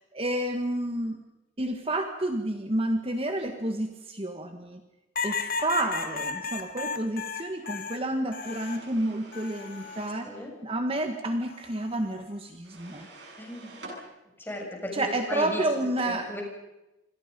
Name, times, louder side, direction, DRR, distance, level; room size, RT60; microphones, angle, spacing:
voice 1, 0.1-1.2 1.6-4.8 5.2-10.3 10.6-13.1 14.9-16.3, right 1 dB, 30° right, 5 dB, 1.7 m, -30 dB
sound 1, 5.2-8.9 9.3-10.1 11.5-11.9, left 4 dB, 50° left, 1.7 m, -34 dB
sound 2, 8.4-10.2 12.6-14.0, right 2 dB, 70° right, 7.8 m, -47 dB
voice 2, 13.4-13.7 14.4-16.4, left 1 dB, 10° left, 0 dB, 7.1 m, -36 dB
28.5 x 26.0 x 5.4 m, 0.97 s
head